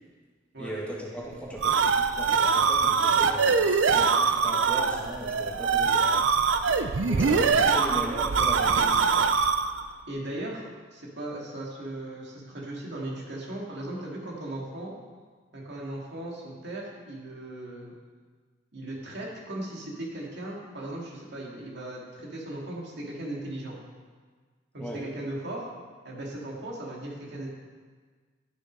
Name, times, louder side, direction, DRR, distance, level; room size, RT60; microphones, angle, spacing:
voice 1, 0.6-6.3 7.1-9.3 24.8-25.0, right 1 dB, 5° left, -5 dB, 2.0 m, -38 dB
sound 1, 1.3-9.8, right 5 dB, 80° right, 0.6 m, -23 dB
voice 2, 10.1-14.9 15.5-17.9 18.7-23.8 24.7-25.7 26.0-27.5, right 1 dB, 65° right, -3 dB, 2.4 m, -37 dB
13.0 x 6.5 x 5.4 m, 1.5 s
head